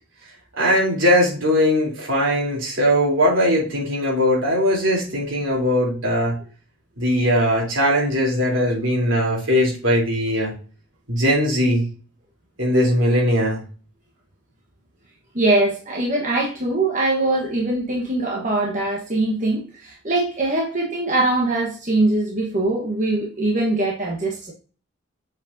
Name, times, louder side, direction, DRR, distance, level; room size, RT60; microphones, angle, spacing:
voice 1, 0.6-6.4 7.0-10.5 11.1-11.8 12.6-13.6, equal, 75° right, 3.2 m, -20 dB
voice 2, 15.3-24.5, right 2 dB, 40° right, 1.1 m, -22 dB
7.2 x 5.2 x 2.6 m
head